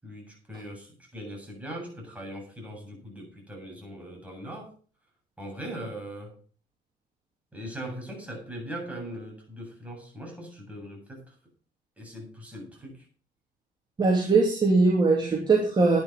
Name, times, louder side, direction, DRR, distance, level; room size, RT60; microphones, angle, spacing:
voice 1, 0.0-4.7 5.4-6.3 7.5-11.3 12.0-13.1, right 1 dB, 10° right, 0 dB, 7.8 m, -40 dB
voice 2, 14.0-16.0, right 3 dB, 25° right, 0 dB, 2.8 m, -21 dB
11.0 x 9.9 x 5.3 m, 0.41 s
cardioid pair, 110°, 17 cm